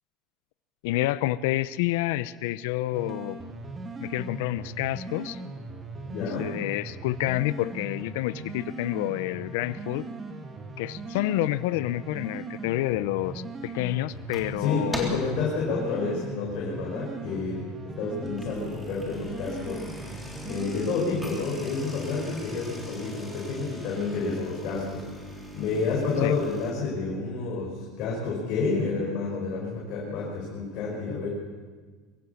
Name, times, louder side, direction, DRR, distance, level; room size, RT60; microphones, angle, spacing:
voice 1, 0.8-3.4 4.0-5.4 6.2-10.1 10.8-15.2 26.2-26.4, left 16 dB, 75° left, 16 dB, 0.6 m, -29 dB
sound 1, 2.9-21.0, right 3 dB, 20° right, 2.1 m, -39 dB
voice 2, 6.0-6.6 14.6-17.6 17.8-19.8 20.5-31.3, left 4 dB, 55° left, -3 dB, 5.6 m, -29 dB
sound 2, 14.1-14.6 14.9-15.4 15.8-16.1 16.7-16.8 17.0-17.1 18.1-26.7, left 1 dB, ahead, 3.6 m, -40 dB
23.5 x 15.5 x 7.2 m, 1.5 s
supercardioid pair, 140°, 0 cm